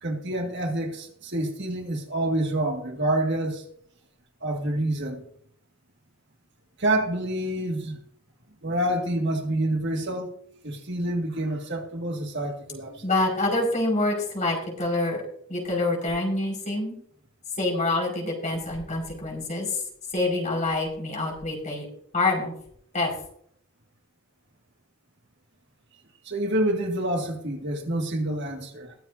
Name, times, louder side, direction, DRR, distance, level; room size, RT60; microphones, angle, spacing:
voice 1, 0.0-3.6 4.4-5.2 6.8-8.0 8.6-10.3 10.6-13.0 26.2-28.9, right 1 dB, 55° right, 2.0 m, -27 dB
voice 2, 13.0-15.2 15.5-16.9 17.6-19.8 20.1-21.9 22.1-22.5 22.9-23.1, left 2 dB, 35° left, 5.2 m, -26 dB
22.0 x 7.5 x 2.7 m
head